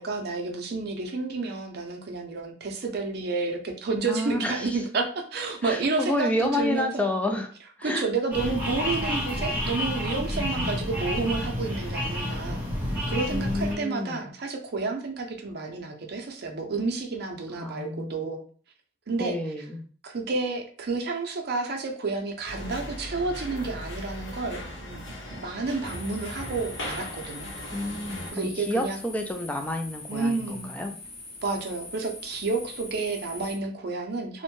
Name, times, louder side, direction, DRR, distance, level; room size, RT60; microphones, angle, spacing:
voice 1, 0.0-7.1 7.8-12.6 13.1-18.4 19.1-19.4 20.0-25.0 25.3-27.5 28.3-29.0 30.1-30.7 31.4-34.4, right 3 dB, 60° right, 3 dB, 0.5 m, -30 dB
voice 2, 4.1-4.8 5.6-7.5 7.8-8.1 13.3-14.3 17.6-18.2 19.2-19.9 27.7-31.0, left 1 dB, 10° left, 4 dB, 0.3 m, -30 dB
sound 1, 8.3-13.8, left 1 dB, 10° right, 0.8 m, -29 dB
sound 2, 22.5-28.3, left 1 dB, 75° left, 0.9 m, -38 dB
sound 3, 25.8-33.6, left 2 dB, 35° left, 0.7 m, -43 dB
2.6 x 2.1 x 3.0 m, 0.42 s
head